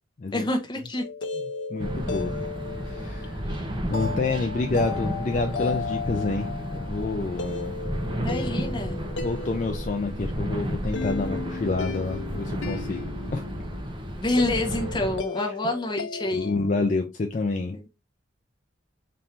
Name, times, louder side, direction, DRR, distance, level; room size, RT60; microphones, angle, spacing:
voice 1, 0.3-1.0 3.5-3.6 8.0-9.0 14.1-16.6 17.7-17.9, left 1 dB, 25° left, 0.8 m, -28 dB
sound 1, 1.0-16.8, left 4 dB, 75° left, 0.7 m, -35 dB
voice 2, 1.7-2.3 2.8-3.4 3.9-6.5 6.8-7.8 8.1-8.4 8.8-8.9 9.2-13.4 16.3-17.9, left 3 dB, 40° left, 0.4 m, -28 dB
sound 2, 1.8-15.2, equal, 25° right, 0.7 m, -32 dB
4.3 x 2.7 x 3.3 m
head